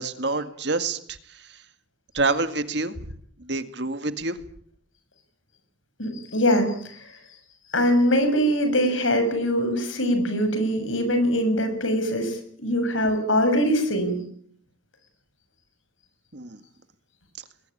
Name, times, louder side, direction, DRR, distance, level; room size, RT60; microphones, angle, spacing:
voice 1, 0.0-1.4 2.1-3.1 3.4-4.4 16.3-16.6, right 3 dB, 60° right, 9 dB, 2.0 m, -27 dB
voice 2, 6.0-7.2 7.7-14.2, equal, 85° left, 8 dB, 7.0 m, -23 dB
21.5 x 20.5 x 8.7 m, 0.62 s
head